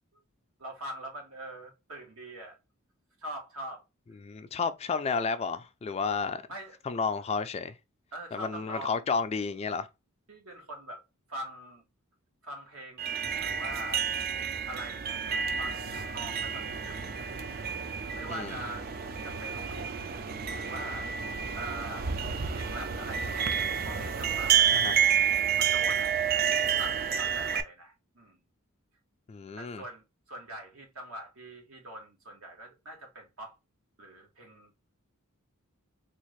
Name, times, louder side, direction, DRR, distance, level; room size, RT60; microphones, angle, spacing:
voice 1, 0.6-2.6 3.2-3.8 6.5-6.8 8.1-9.1 10.3-11.0 11.3-11.9 12.4-14.0 14.7-17.1 18.1-18.9 19.2-20.2 20.5-21.1 21.5-22.2 22.5-23.5 23.8-24.9 25.6-26.2 26.6-28.4 29.6-33.6 34.0-34.9, right 1 dB, 75° right, 1.5 m, -43 dB
voice 2, 4.2-6.4 6.9-7.7 8.3-9.9 18.3-18.6 24.7-24.9 29.3-29.8, left 5 dB, 30° left, 0.3 m, -31 dB
sound 1, 13.0-27.6, right 8 dB, 45° right, 0.4 m, -29 dB
3.6 x 2.4 x 3.1 m
head